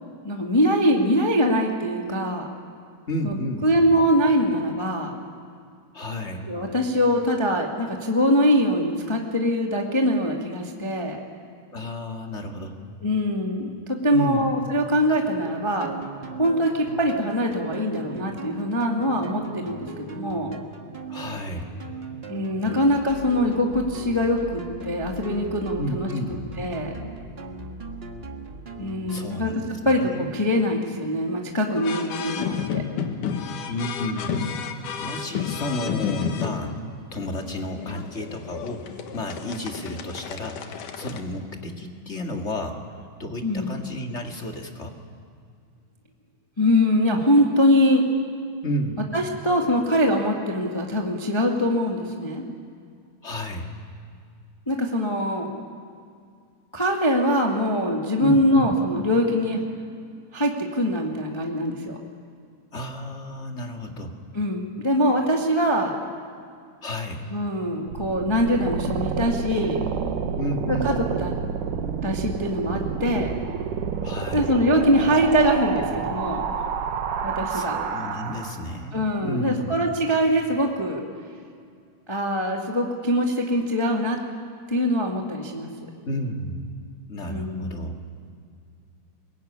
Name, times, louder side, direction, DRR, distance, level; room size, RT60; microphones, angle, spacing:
voice 1, 0.2-2.5 3.2-5.1 6.5-11.2 13.0-15.9 16.4-20.5 22.3-26.1 26.6-26.9 28.8-32.8 43.4-43.8 46.6-48.1 49.1-52.4 54.7-55.5 56.7-59.6 60.3-62.0 64.3-65.9 67.3-69.8 70.7-71.3 72.0-73.3 74.3-76.4 77.2-77.7 78.9-81.0 82.1-84.2 84.7-85.7 87.3-87.8, equal, 10° left, 1 dB, 1.4 m, -23 dB
voice 2, 3.1-3.7 5.9-6.5 11.7-12.8 14.1-14.5 21.1-21.8 25.8-26.4 29.1-30.3 33.7-34.4 35.0-36.8 37.1-42.8 43.2-45.0 48.6-49.1 53.2-53.6 58.2-58.7 62.7-64.1 66.8-67.3 70.4-70.9 74.0-74.5 77.5-79.7 86.0-86.6 87.1-88.0, left 1 dB, 25° left, 3 dB, 1.7 m, -31 dB
sound 1, 15.8-29.5, right 3 dB, 35° right, 0.9 m, -38 dB
sound 2, 31.8-41.2, left 7 dB, 75° left, 2.9 m, -32 dB
sound 3, 67.9-78.8, right 7 dB, 80° right, 2.8 m, -29 dB
24.0 x 21.5 x 9.7 m, 2.3 s
omnidirectional pair, 3.7 m